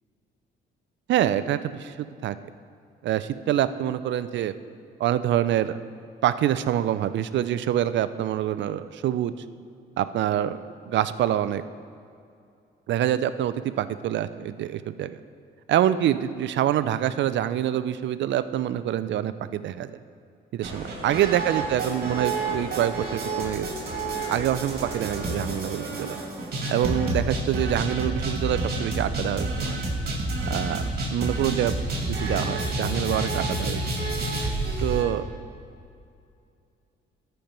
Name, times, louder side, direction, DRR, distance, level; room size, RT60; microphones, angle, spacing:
voice 1, 1.1-1.9 2.2-2.4 3.0-4.5 5.0-5.8 6.2-9.3 10.0-11.6 12.9-15.2 15.7-20.0 20.5-23.7 24.3-26.2 26.7-29.8 30.5-31.7 32.1-33.8 34.8-35.2, right 11 dB, 65° right, 13 dB, 0.5 m, -26 dB
sound 1, 20.6-35.0, right 2 dB, 50° right, 2.2 m, -29 dB
13.0 x 4.6 x 5.2 m, 2.5 s
cardioid pair, 90°, 20 cm